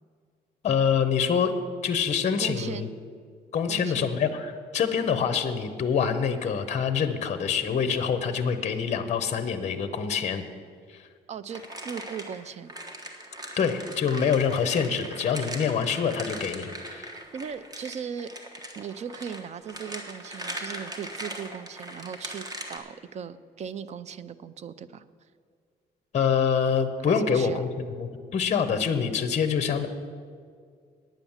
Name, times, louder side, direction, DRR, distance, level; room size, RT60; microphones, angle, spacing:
voice 1, 0.6-1.5 1.8-2.9 3.5-10.4 10.9-11.1 13.6-17.1 26.1-27.7 28.0-29.9, left 6 dB, 40° left, 10 dB, 0.7 m, -25 dB
voice 2, 2.4-2.9 3.7-4.1 11.3-12.7 17.0-18.3 18.8-25.0 27.0-27.6, right 7 dB, 40° right, 14 dB, 0.4 m, -38 dB
sound 1, 11.5-22.8, right 1 dB, 20° right, 1.2 m, -40 dB
9.2 x 9.1 x 7.1 m, 2.1 s
cardioid pair, 150°, 17 cm